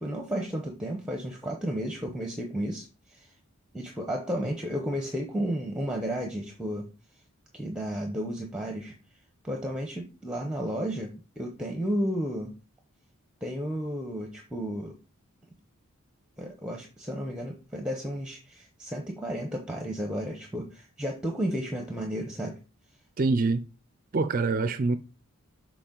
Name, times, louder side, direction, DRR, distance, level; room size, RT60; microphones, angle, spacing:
voice 1, 0.0-3.3 3.7-6.9 7.5-8.9 9.4-12.5 13.4-15.0 16.4-22.6, equal, 5° right, 0.8 m, -33 dB
voice 2, 23.2-23.7 24.1-25.0, right 3 dB, 40° right, 0.4 m, -25 dB
6.8 x 4.6 x 3.8 m
head